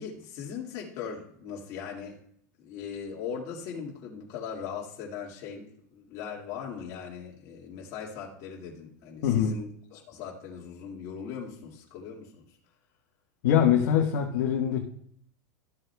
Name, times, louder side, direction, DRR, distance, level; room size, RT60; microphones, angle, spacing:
voice 1, 0.0-2.2 2.6-12.7, left 7 dB, 40° left, -3 dB, 2.2 m, -39 dB
voice 2, 9.2-9.6 13.4-14.8, left 9 dB, 60° left, 0 dB, 1.5 m, -23 dB
14.0 x 7.7 x 2.3 m, 0.63 s
supercardioid pair, 165°, 9 cm